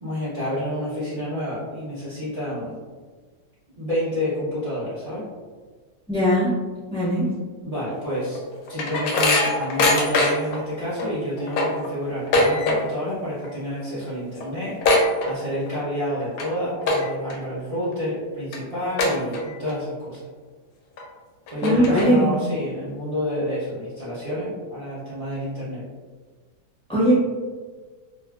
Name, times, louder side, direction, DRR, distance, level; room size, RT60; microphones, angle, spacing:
voice 1, 0.0-2.8 3.7-5.2 7.6-8.4 8.7-20.2 21.5-25.8, equal, 60° right, -12 dB, 0.3 m, -29 dB
voice 2, 6.1-6.6 6.9-7.3 21.6-22.4 26.9-27.2, equal, 5° left, -10 dB, 0.6 m, -19 dB
sound 1, 8.1-10.6 11.0-11.1 11.4-13.1 13.3-13.7 14.0-14.1 14.4-15.8 16.2-16.4 16.8-17.3 17.8-17.9 18.5-18.6 19.0-19.7 20.1-20.2 21.0-21.1 21.5-22.4, left 2 dB, 70° left, 0.9 m, -22 dB
2.6 x 2.5 x 2.3 m, 1.5 s
omnidirectional pair, 1.9 m